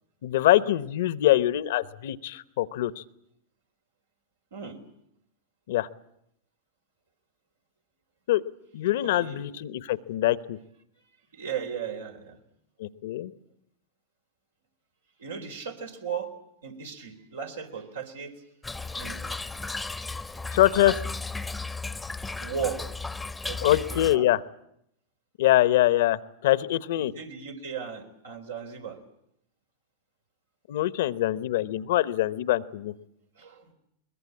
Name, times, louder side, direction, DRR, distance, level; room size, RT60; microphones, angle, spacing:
voice 1, 0.2-3.0 5.7-5.9 8.3-8.4 8.7-10.6 12.8-13.3 20.5-21.0 23.6-24.4 25.4-26.2 26.4-27.1 30.7-32.9, left 14 dB, 70° left, 16 dB, 1.0 m, -24 dB
voice 2, 9.0-9.4 11.3-12.4 15.2-16.3 16.6-18.3 18.9-19.6 22.4-22.8 23.5-24.3 27.0-29.0 33.4-33.7, right 7 dB, 85° right, 3 dB, 3.7 m, -36 dB
Toilet flush / Trickle dribble, 18.6-24.2, left 3 dB, 10° left, 0.8 m, -35 dB
22.0 x 21.5 x 8.6 m, 0.76 s
hypercardioid pair, 105°, 0 cm